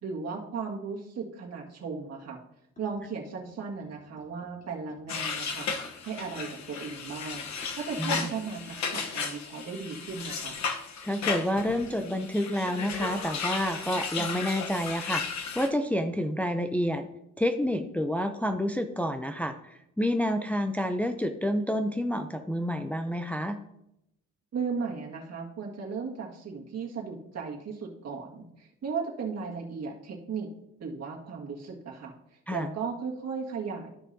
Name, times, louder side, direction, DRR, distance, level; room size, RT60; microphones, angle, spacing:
voice 1, 0.0-2.4 2.8-7.4 7.8-10.6 24.5-30.5 30.8-32.1 32.5-33.9, right 5 dB, 55° right, -1 dB, 1.9 m, -36 dB
sound 1, 2.8-9.0, left 1 dB, 25° left, 3.3 m, -53 dB
sound 2, 5.1-15.7, left 5 dB, 65° left, 1.1 m, -35 dB
voice 2, 8.0-8.3 11.0-17.1 17.4-23.6 32.5-32.7, equal, 5° left, 6 dB, 0.5 m, -29 dB
12.5 x 6.1 x 2.7 m, 0.82 s
cardioid pair, 90°, 30 cm